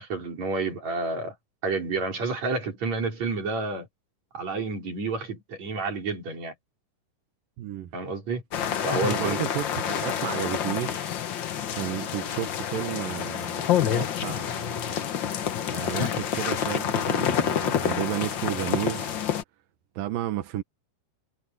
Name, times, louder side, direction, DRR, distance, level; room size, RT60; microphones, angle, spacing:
voice 1, 0.0-1.3 1.6-3.9 4.3-6.5 7.9-8.4 8.8-9.4, right 3 dB, 55° right, 5.7 m, -29 dB
voice 2, 7.6-7.9 9.0-11.1 11.7-15.0 15.7-19.2 20.0-20.6, right 12 dB, 85° right, 2.9 m, -32 dB
sound 1, 8.5-19.4, left 9 dB, 75° left, 1.0 m, -28 dB
omnidirectional pair, 3.8 m